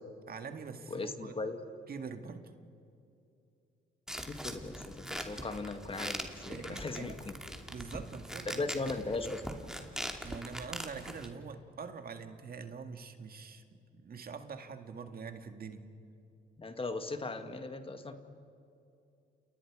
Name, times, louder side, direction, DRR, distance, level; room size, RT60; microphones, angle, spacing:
voice 1, 0.3-1.4 1.9-2.5 5.4-5.5 6.4-7.2 7.7-8.7 10.2-15.9, right 5 dB, 50° right, 7 dB, 2.0 m, -44 dB
voice 2, 0.9-1.6 4.3-7.6 8.5-9.4 16.6-18.1, left 3 dB, 25° left, 7 dB, 2.0 m, -38 dB
sound 1, 4.1-11.3, equal, 5° right, 2.7 m, -42 dB
29.5 x 29.0 x 5.0 m, 2.6 s
cardioid pair, 90°, 20 cm